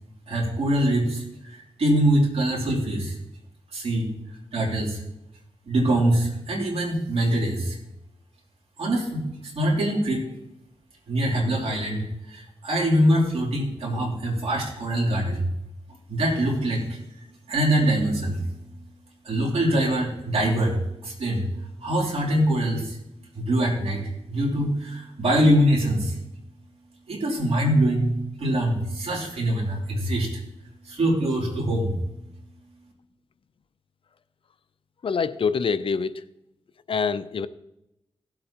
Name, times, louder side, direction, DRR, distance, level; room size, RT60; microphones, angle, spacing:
voice 1, 0.3-3.1 3.7-4.1 4.5-5.0 5.7-7.8 8.8-10.2 11.1-15.5 16.1-17.0 17.5-18.9 19.2-21.5 21.8-23.0 23.3-24.0 24.3-26.2 27.1-30.4 30.8-32.0, right 1 dB, 70° right, -3 dB, 3.3 m, -24 dB
voice 2, 35.0-36.2 36.9-37.5, left 5 dB, 55° left, 12 dB, 0.5 m, -25 dB
16.5 x 7.7 x 3.0 m, 0.87 s
cardioid pair, 75°, 11 cm